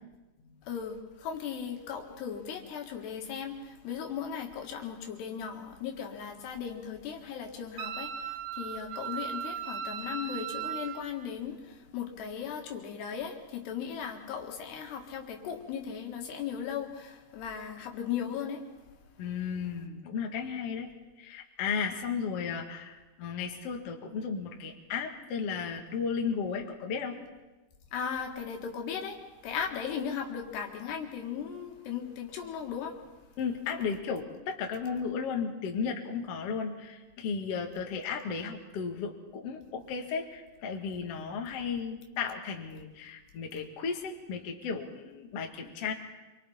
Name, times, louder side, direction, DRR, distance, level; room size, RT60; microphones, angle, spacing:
voice 1, 0.6-18.6 27.9-33.0, left 7 dB, 80° left, 3 dB, 3.9 m, -37 dB
Wind instrument woodwind instrument, 7.8-11.0, right 8 dB, 75° right, 1.8 m, -37 dB
voice 2, 19.2-20.9 21.2-27.2 33.4-45.9, left 6 dB, 50° left, 3 dB, 2.1 m, -34 dB
27.5 x 23.5 x 4.3 m, 1.1 s
omnidirectional pair, 4.7 m